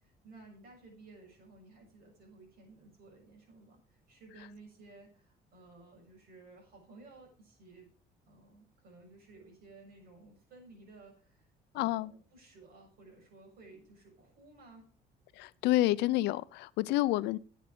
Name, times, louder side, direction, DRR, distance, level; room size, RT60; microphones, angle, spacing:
voice 1, 0.2-7.9 8.3-11.5 11.7-14.9 17.1-17.2, right 3 dB, 65° right, 7.0 m, -56 dB
voice 2, 11.7-12.1 15.4-17.4, left 16 dB, 85° left, 0.5 m, -29 dB
11.0 x 8.4 x 5.1 m
cardioid pair, 110°, 17 cm